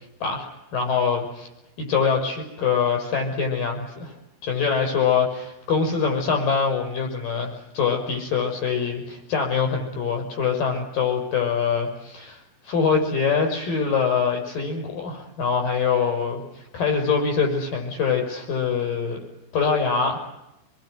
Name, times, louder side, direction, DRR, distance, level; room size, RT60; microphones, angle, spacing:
voice 1, 0.2-1.5 1.8-4.1 4.4-19.2 19.5-20.2, left 6 dB, 55° left, 3 dB, 8.2 m, -24 dB
24.5 x 22.5 x 9.7 m, 0.90 s
omnidirectional pair, 4.8 m